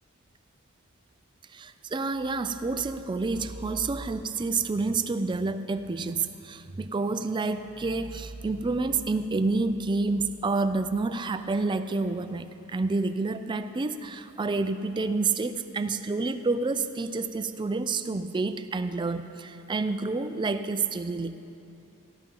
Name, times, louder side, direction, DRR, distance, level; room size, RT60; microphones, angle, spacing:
voice 1, 1.5-21.4, right 3 dB, 20° right, 10 dB, 0.3 m, -29 dB
14.5 x 11.0 x 3.8 m, 2.8 s
head